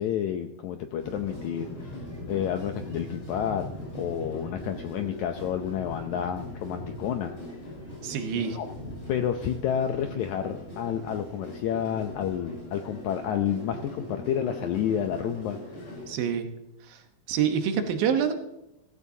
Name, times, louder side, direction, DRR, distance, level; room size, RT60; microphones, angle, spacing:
voice 1, 0.0-2.0 2.3-3.7 3.9-7.3 8.3-8.7 9.1-16.0, left 9 dB, 90° left, 6 dB, 1.6 m, -30 dB
sound 1, 1.0-16.1, left 1 dB, 20° left, 6.4 m, -40 dB
voice 2, 8.0-8.6 16.1-16.5 16.9-17.0 17.3-18.3, right 8 dB, 75° right, 6 dB, 2.8 m, -26 dB
16.0 x 15.0 x 2.8 m, 0.87 s
omnidirectional pair, 4.3 m